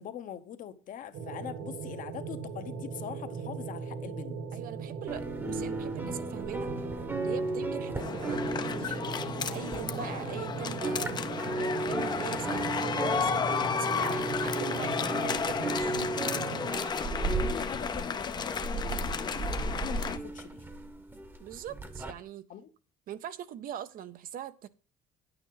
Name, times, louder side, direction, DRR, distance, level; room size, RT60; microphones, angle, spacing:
voice 1, 0.0-4.4 17.4-19.1 19.7-20.7 22.5-22.7, left 9 dB, 45° left, 0.8 m, -42 dB
sound 1, 1.1-16.7, right 6 dB, 75° right, 2.1 m, -39 dB
voice 2, 4.5-6.7 7.2-9.0 9.5-11.2 11.5-13.4 13.7-16.2 16.6-16.9 21.4-22.5 23.1-24.7, right 10 dB, 50° right, 0.6 m, -42 dB
sound 2, 5.1-10.4 10.7-22.1, right 2 dB, 10° right, 0.9 m, -35 dB
sound 3, 8.0-20.2, left 6 dB, 25° left, 0.5 m, -33 dB
10.0 x 8.8 x 3.9 m
cardioid pair, 170°, 19 cm